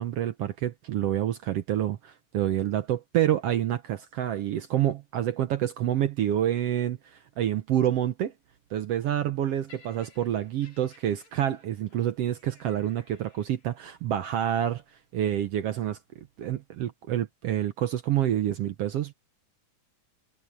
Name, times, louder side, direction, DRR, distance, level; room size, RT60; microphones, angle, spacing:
voice 1, 0.0-8.3 8.7-14.8 15.1-16.0 16.4-19.1, right 11 dB, 70° right, 1.5 m, -28 dB
Laughter, 9.7-13.9 14.7-14.9, left 4 dB, 60° left, 7.4 m, -58 dB
omnidirectional pair, 3.6 m